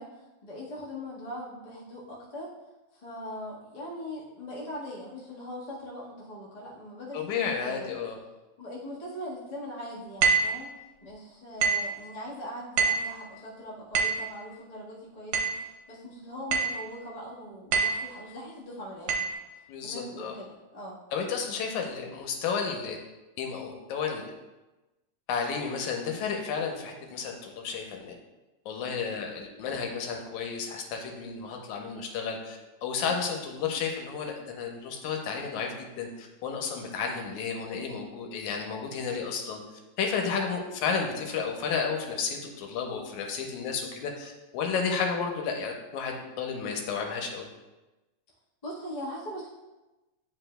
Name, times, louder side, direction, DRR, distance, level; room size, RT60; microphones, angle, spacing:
voice 1, 0.0-2.5 2.9-8.0 8.6-10.7 11.0-19.2 19.8-21.0 48.6-49.5, equal, 65° left, -6 dB, 0.4 m, -41 dB
voice 2, 7.1-8.2 19.7-20.3 21.1-23.0 23.4-24.3 25.3-28.2 28.7-39.6 40.0-47.5, left 5 dB, 85° left, 2 dB, 2.2 m, -32 dB
sound 1, 10.2-10.6 11.6-11.9 12.8-13.1 14.0-14.3 15.3-15.6 16.5-16.8 17.7-18.1 19.1-19.3, right 5 dB, 70° right, 1.9 m, -25 dB
9.8 x 4.7 x 2.2 m, 1.1 s
omnidirectional pair, 3.4 m